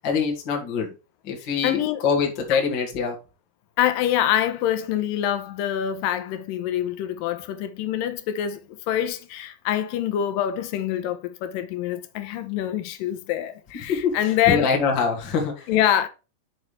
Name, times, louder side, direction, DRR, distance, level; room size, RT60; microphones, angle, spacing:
voice 1, 0.0-0.9 1.3-3.1 13.9-14.1 14.5-15.7, left 5 dB, 40° left, 2.0 m, -24 dB
voice 2, 1.6-2.0 3.8-14.8 15.7-16.1, left 11 dB, 80° left, 2.2 m, -25 dB
7.2 x 6.5 x 3.3 m
omnidirectional pair, 4.4 m